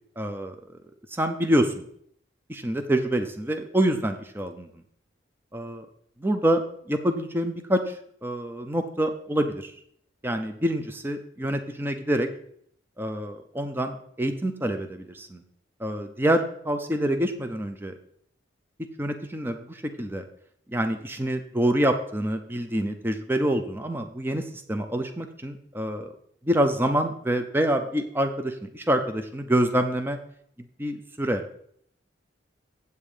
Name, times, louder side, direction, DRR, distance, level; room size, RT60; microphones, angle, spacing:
voice 1, 0.2-0.6 1.1-1.8 2.5-4.7 5.5-5.9 6.2-6.6 6.9-8.0 8.2-9.7 10.2-12.3 13.0-15.4 15.8-17.9 19.0-20.2 20.7-26.1 26.4-30.2 30.8-31.4, right 1 dB, 10° right, 6 dB, 0.5 m, -26 dB
8.1 x 7.3 x 4.9 m, 0.66 s
head